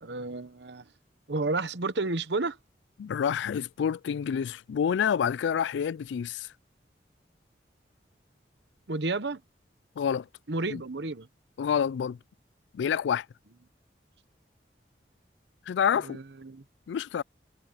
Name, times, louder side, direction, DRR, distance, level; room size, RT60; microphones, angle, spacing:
voice 1, 0.0-0.9 1.3-2.6 8.9-9.4 10.5-11.3 16.0-16.6, right 3 dB, 75° right, 1.0 m, -31 dB
voice 2, 3.0-6.5 10.0-10.3 10.7-10.8 11.6-12.2 12.7-13.3 15.7-16.2 16.9-17.2, left 7 dB, 85° left, 0.3 m, -28 dB
head